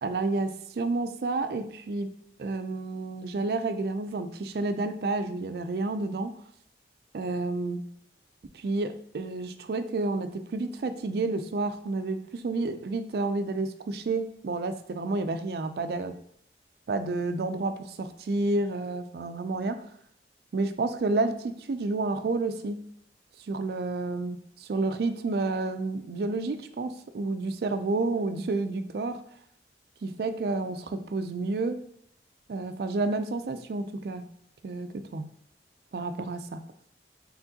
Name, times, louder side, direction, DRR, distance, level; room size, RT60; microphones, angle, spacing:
voice 1, 0.0-2.1 2.4-6.4 7.1-7.9 8.5-16.2 16.9-19.9 20.5-22.9 23.5-29.2 30.0-31.8 32.5-34.3 34.6-35.3 35.9-36.6, right 3 dB, 60° right, 10 dB, 0.4 m, -30 dB
4.6 x 3.6 x 2.7 m, 0.70 s
head